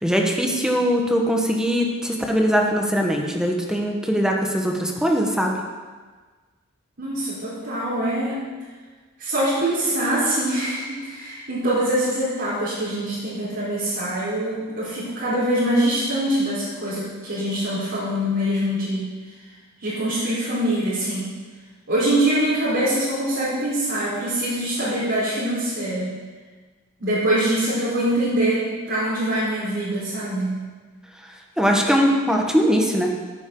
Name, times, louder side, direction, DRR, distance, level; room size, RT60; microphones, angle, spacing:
voice 1, 0.0-5.6 31.6-33.3, equal, 5° right, 1 dB, 1.2 m, -21 dB
voice 2, 7.0-8.4 9.2-19.1 19.8-21.3 21.9-26.2 27.0-30.6, right 1 dB, 60° right, -12 dB, 4.2 m, -24 dB
15.0 x 9.1 x 3.9 m, 1.4 s
head